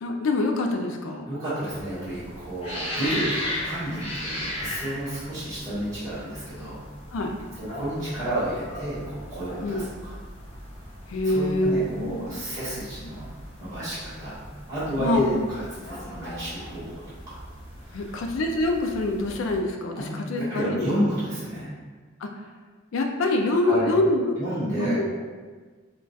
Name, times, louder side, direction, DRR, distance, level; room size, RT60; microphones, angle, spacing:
voice 1, 0.0-1.3 7.1-7.3 9.6-9.8 11.1-12.4 15.0-15.3 17.9-20.9 22.2-22.3 22.9-24.4 24.8-25.1, left 2 dB, 80° left, 4 dB, 0.4 m, -25 dB
voice 2, 1.2-6.7 7.5-10.1 11.2-13.3 13.6-14.4 14.7-17.4 17.8-18.2 20.0-21.7 23.6-23.9 24.4-25.2, right 1 dB, 20° right, -14 dB, 1.1 m, -31 dB
sound 1, 1.7-19.6, left 1 dB, 30° left, 0.8 m, -38 dB
2.3 x 2.2 x 3.8 m, 1.4 s
head